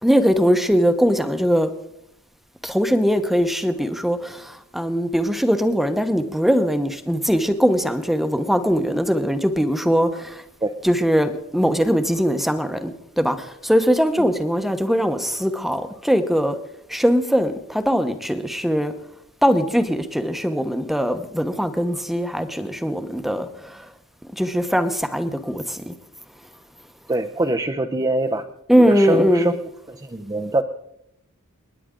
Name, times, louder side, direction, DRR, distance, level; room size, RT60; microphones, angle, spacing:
voice 1, 0.0-1.7 2.6-10.4 10.8-16.6 16.9-18.9 19.4-23.8 24.4-25.9 28.7-29.5, equal, ahead, 1.0 m, -21 dB
voice 2, 27.1-28.5 28.8-30.6, right 2 dB, 20° right, 0.7 m, -24 dB
29.0 x 10.0 x 3.8 m
head